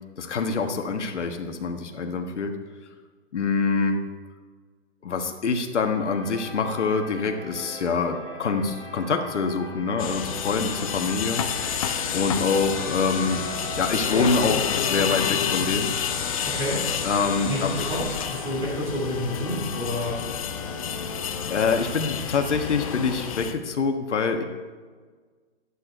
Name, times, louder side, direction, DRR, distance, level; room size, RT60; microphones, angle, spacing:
voice 1, 0.2-2.6 3.3-4.0 5.0-11.4 12.1-13.4 13.8-15.9 17.0-17.7 21.4-24.4, left 4 dB, 85° left, 4 dB, 1.4 m, -25 dB
sound 1, 5.9-23.3, left 2 dB, 10° left, 1.7 m, -41 dB
sound 2, 10.0-23.5, left 8 dB, 30° left, 0.5 m, -29 dB
Trumpet, 10.3-18.5, right 2 dB, 40° right, 2.2 m, -40 dB
voice 2, 16.5-16.8 17.5-20.1, left 1 dB, 10° right, -4 dB, 2.8 m, -29 dB
12.0 x 8.4 x 4.5 m, 1.5 s
hypercardioid pair, 155°, 34 cm